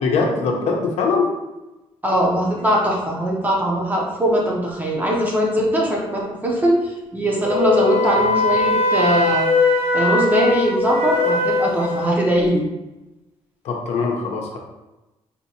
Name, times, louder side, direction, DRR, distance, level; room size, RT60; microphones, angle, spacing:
voice 1, 0.0-1.3 13.6-14.6, left 4 dB, 80° left, 1 dB, 0.7 m, -21 dB
voice 2, 2.0-9.5 9.9-12.6, equal, 15° right, -3 dB, 0.6 m, -20 dB
Wind instrument woodwind instrument, 7.4-12.2, left 2 dB, 65° right, 1.0 m, -20 dB
4.1 x 2.7 x 2.7 m, 1.0 s
cardioid pair, 155°, 11 cm